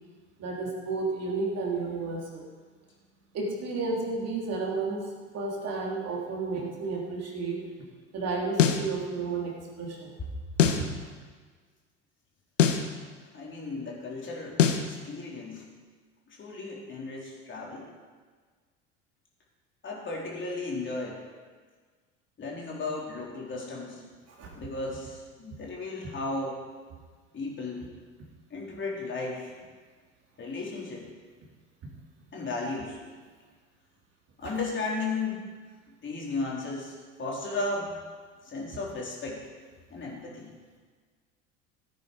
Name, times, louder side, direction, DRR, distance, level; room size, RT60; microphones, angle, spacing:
voice 1, 0.4-2.5 3.3-5.0 5.3-7.6 8.1-10.1 10.6-10.9 24.3-24.5 31.8-31.9 34.4-34.5, right 3 dB, 40° right, -2 dB, 3.3 m, -32 dB
sound 1, 8.6-8.9 10.6-10.9 12.6-12.9 14.6-14.9, left 8 dB, 75° left, 1.1 m, -22 dB
voice 2, 13.3-14.6 14.8-15.6 16.4-17.9 19.8-21.2 22.4-24.0 24.5-26.6 27.3-27.9 28.5-29.5 30.4-31.1 32.3-33.0 34.4-35.4 36.0-37.9 38.5-39.4 39.9-40.5, left 3 dB, 30° left, -3 dB, 3.9 m, -35 dB
15.5 x 9.4 x 5.0 m, 1.5 s
figure-of-eight pair, 70°, 37 cm